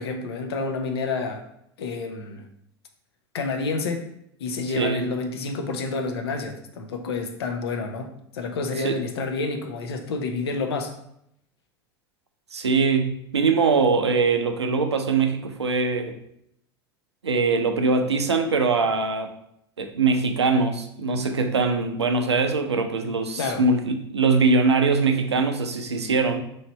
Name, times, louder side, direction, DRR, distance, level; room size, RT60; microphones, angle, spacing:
voice 1, 0.0-1.4 1.8-2.4 3.3-4.1 4.4-10.9 23.4-23.7, left 3 dB, 75° left, 0.6 m, -29 dB
voice 2, 4.8-5.1 8.8-9.0 12.5-16.2 17.2-19.3 19.8-26.4, right 4 dB, 90° right, 0.4 m, -22 dB
3.2 x 2.7 x 4.3 m
figure-of-eight pair, 80°, 14 cm